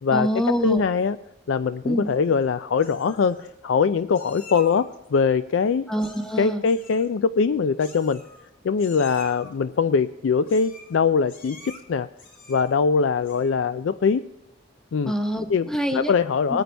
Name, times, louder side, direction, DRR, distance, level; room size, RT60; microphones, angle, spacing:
voice 1, 0.1-0.8 1.8-2.1 5.9-6.6 15.1-16.1, equal, 5° left, 5 dB, 1.0 m, -25 dB
voice 2, 0.6-1.2 1.5-5.9 6.4-8.2 8.6-11.6 11.9-12.1 12.5-14.2 14.9-15.1 15.5-16.6, left 5 dB, 75° left, 12 dB, 0.4 m, -22 dB
Meow, 2.0-2.5 2.8-3.5 4.1-5.0 6.0-6.4 6.6-7.1 7.8-8.5 8.8-9.5 10.4-11.0 11.3-11.8 12.2-12.8 13.2-13.6, left 3 dB, 45° left, 3.6 m, -46 dB
20.5 x 9.3 x 3.4 m, 0.94 s
head